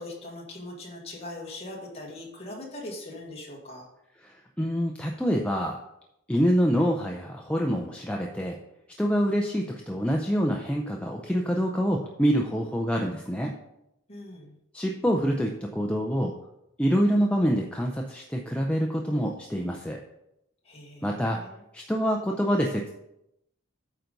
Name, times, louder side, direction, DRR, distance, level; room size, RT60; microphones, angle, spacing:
voice 1, 0.0-3.9 14.1-14.6 20.7-21.6, left 1 dB, 30° left, -2 dB, 1.8 m, -41 dB
voice 2, 4.6-5.8 6.3-8.6 9.0-13.5 14.7-16.3 16.8-20.0 21.0-21.4 21.7-22.9, equal, 5° left, 0 dB, 0.5 m, -26 dB
9.0 x 4.0 x 5.2 m, 0.83 s
head